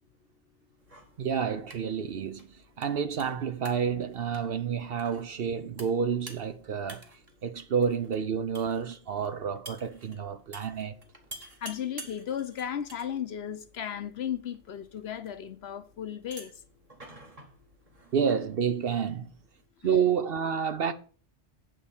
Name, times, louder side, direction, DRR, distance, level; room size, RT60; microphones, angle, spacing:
sound 1, 0.8-19.7, right 2 dB, 30° right, 1.5 m, -51 dB
voice 1, 1.2-7.0 7.4-10.9 18.1-19.3 19.8-20.9, right 7 dB, 55° right, 0.8 m, -29 dB
voice 2, 11.6-16.5, left 9 dB, 60° left, 0.9 m, -35 dB
8.8 x 4.2 x 7.1 m
omnidirectional pair, 1.3 m